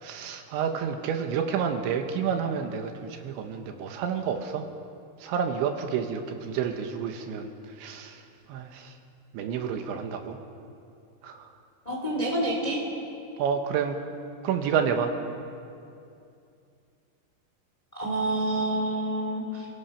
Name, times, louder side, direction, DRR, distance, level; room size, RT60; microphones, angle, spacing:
voice 1, 0.0-4.6 5.2-7.5 7.8-8.2 8.5-8.9 9.3-10.4 11.2-11.5 13.4-14.0 14.4-15.1, right 7 dB, 75° right, 5 dB, 3.3 m, -29 dB
voice 2, 11.8-12.8 17.9-19.7, right 1 dB, 10° left, -1 dB, 2.5 m, -28 dB
29.0 x 17.5 x 5.7 m, 2.5 s
omnidirectional pair, 5.4 m